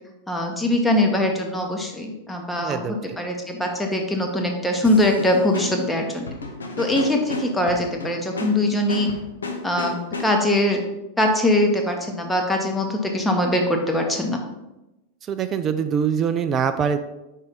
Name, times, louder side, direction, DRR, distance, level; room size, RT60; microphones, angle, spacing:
voice 1, 0.3-2.8 3.2-6.3 6.8-9.1 9.6-10.8 11.2-14.4, left 1 dB, 5° left, 2 dB, 0.9 m, -22 dB
voice 2, 2.6-3.2 15.2-17.0, right 7 dB, 25° right, 9 dB, 0.4 m, -24 dB
sound 1, 4.8-10.6, left 3 dB, 70° left, 0.7 m, -33 dB
5.3 x 4.5 x 4.0 m, 0.97 s
figure-of-eight pair, 90°, 0 cm